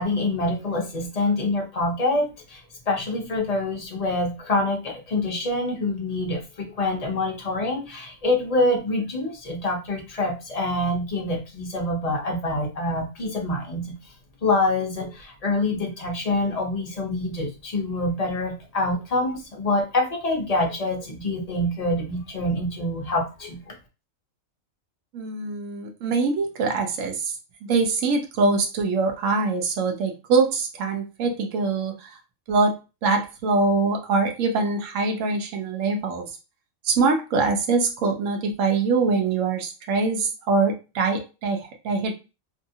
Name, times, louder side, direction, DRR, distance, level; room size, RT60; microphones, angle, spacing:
voice 1, 0.0-14.0 14.4-23.7, left 2 dB, 40° left, 0 dB, 0.6 m, -26 dB
voice 2, 25.1-27.3 27.7-32.1 32.5-32.8 33.0-36.3 36.8-42.1, right 4 dB, 70° right, 3 dB, 1.0 m, -23 dB
2.7 x 2.5 x 2.7 m, 0.30 s
omnidirectional pair, 1.4 m